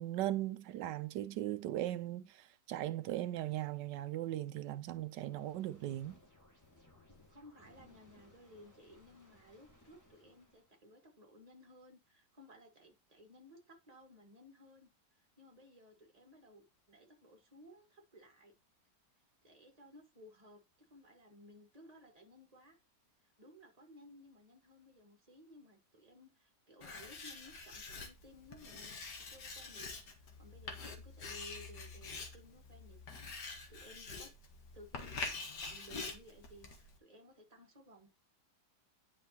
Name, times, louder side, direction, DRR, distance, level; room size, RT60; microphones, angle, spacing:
voice 1, 0.0-6.2, right 13 dB, 85° right, 1.2 m, -38 dB
sound 1, 5.0-10.8, left 1 dB, 10° left, 1.9 m, -64 dB
voice 2, 7.3-18.6 19.4-22.8 23.4-29.0 29.3-29.9 30.2-34.3 34.7-38.1, equal, 20° right, 2.0 m, -58 dB
Writing, 26.8-37.0, left 4 dB, 70° left, 2.0 m, -46 dB
10.5 x 5.1 x 2.8 m
omnidirectional pair, 1.8 m